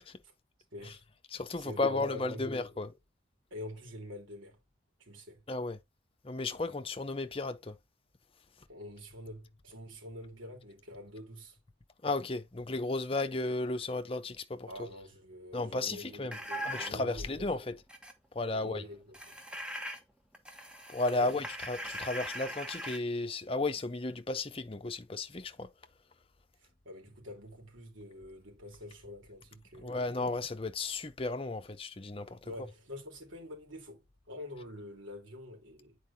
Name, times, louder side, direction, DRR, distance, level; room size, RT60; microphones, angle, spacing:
voice 1, 0.7-1.0 1.6-2.6 3.5-4.6 5.0-5.4 8.7-11.6 14.7-17.5 18.5-19.4 21.1-21.4 26.6-30.1 32.4-36.0, left 1 dB, 80° right, 3.4 m, -46 dB
voice 2, 1.3-2.9 5.5-5.8 6.2-7.8 12.0-14.7 15.5-16.4 16.6-17.8 18.3-18.8 20.9-25.7 29.8-32.5, left 2 dB, 30° left, 0.7 m, -34 dB
sound 1, 16.3-17.0 17.9-18.1 19.1-20.0 20.3-23.0, equal, 5° right, 1.1 m, -40 dB
9.4 x 4.6 x 2.8 m
head